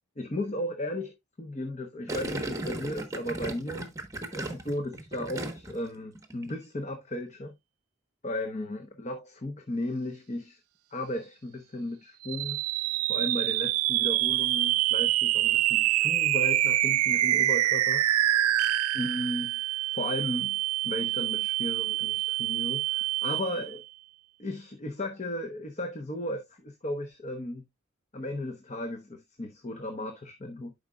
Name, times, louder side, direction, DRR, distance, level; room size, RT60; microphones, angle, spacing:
voice 1, 0.2-3.9 4.3-7.5 8.2-10.6 10.9-12.6 13.1-18.0 18.9-19.5 19.9-20.6 20.8-23.8 24.4-27.6 28.1-30.7, left 1 dB, 30° left, 0.8 m, -35 dB
Gurgling, 2.1-5.9 6.1-6.5, right 2 dB, 15° right, 1.0 m, -36 dB
sound 1, 12.2-23.8, right 15 dB, 90° right, 0.4 m, -26 dB
11.0 x 5.0 x 2.3 m
head